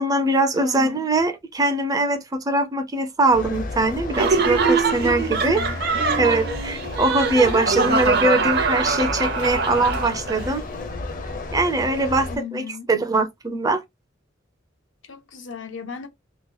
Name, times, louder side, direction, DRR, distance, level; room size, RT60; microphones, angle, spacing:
voice 1, 0.0-5.6 6.2-10.6 11.5-13.8, right 2 dB, 20° right, 0.5 m, -22 dB
voice 2, 0.6-1.0 5.0-5.9 12.3-12.9 15.1-16.1, left 5 dB, 75° left, 0.8 m, -36 dB
sound 1, 3.3-12.4, left 2 dB, 45° left, 0.7 m, -32 dB
Laughter, 4.1-10.5, right 4 dB, 55° right, 0.6 m, -23 dB
2.9 x 2.2 x 3.7 m
head